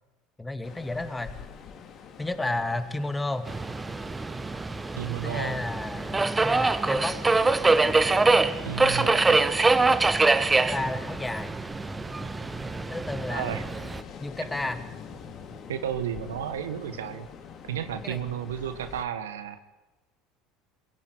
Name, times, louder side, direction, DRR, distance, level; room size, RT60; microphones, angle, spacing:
voice 1, 0.4-1.4 2.2-3.5 5.2-7.1 9.0-9.1 10.6-11.5 12.9-13.6 14.2-14.8 18.0-18.2, left 2 dB, 10° left, 10 dB, 2.3 m, -32 dB
Ocean, 0.6-19.0, left 6 dB, 50° left, 3.0 m, -45 dB
Subway metro underground, 3.5-14.0, right 3 dB, 15° right, 1.2 m, -24 dB
voice 2, 5.0-5.6 8.6-9.5 13.3-13.6 15.7-17.3 17.6-19.6, right 9 dB, 80° right, 11 dB, 1.4 m, -33 dB
22.5 x 16.5 x 9.4 m, 1.1 s
hypercardioid pair, 70°, 0 cm